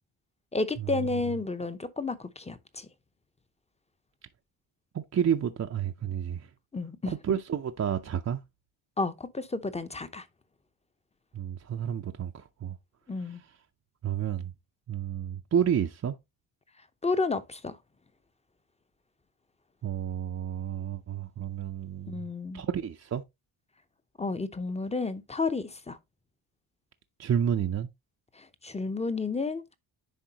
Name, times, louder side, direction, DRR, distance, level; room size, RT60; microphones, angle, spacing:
voice 1, 0.5-2.9 6.7-7.1 9.0-10.3 13.1-13.4 17.0-17.8 22.1-22.6 24.2-26.0 28.4-29.7, left 3 dB, 15° left, 0.7 m, -31 dB
voice 2, 4.9-6.5 7.1-8.4 11.3-12.8 14.0-14.5 14.9-16.2 19.8-22.3 22.5-23.2 27.2-27.9, right 8 dB, 35° right, 0.5 m, -30 dB
10.0 x 3.7 x 2.8 m
cardioid pair, 85°, 50 cm